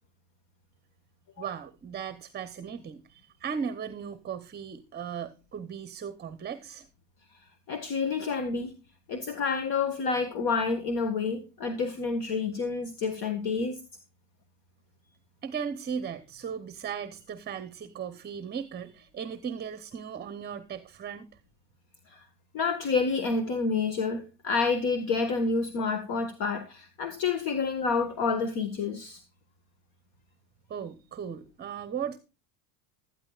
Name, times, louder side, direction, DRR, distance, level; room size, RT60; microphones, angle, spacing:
voice 1, 1.4-6.9 15.4-21.3 30.7-32.2, right 7 dB, 20° right, 0.9 m, -37 dB
voice 2, 7.7-8.7 9.1-13.8 22.1-22.2 22.5-29.2, left 4 dB, 50° left, 1.8 m, -29 dB
16.0 x 12.5 x 2.4 m
supercardioid pair, 100°, 47 cm